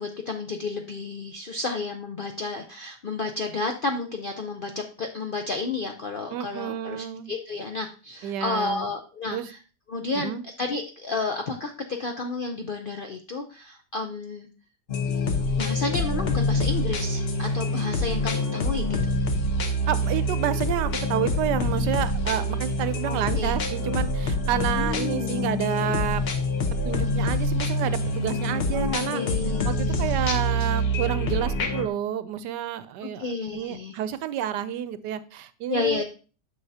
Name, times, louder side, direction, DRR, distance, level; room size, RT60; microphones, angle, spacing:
voice 1, 0.0-9.6 9.9-14.5 15.5-19.2 23.0-23.6 24.8-25.4 28.7-30.6 33.0-34.0 35.7-36.0, left 3 dB, 75° left, 4 dB, 0.4 m, -31 dB
voice 2, 6.3-7.3 8.2-8.9 9.3-9.5 10.1-10.4 19.9-26.2 26.8-29.2 29.6-36.0, right 10 dB, 80° right, 13 dB, 1.2 m, -29 dB
sound 1, 14.9-31.9, left 1 dB, 45° left, 0.9 m, -26 dB
9.7 x 6.0 x 2.7 m, 0.36 s
omnidirectional pair, 1.8 m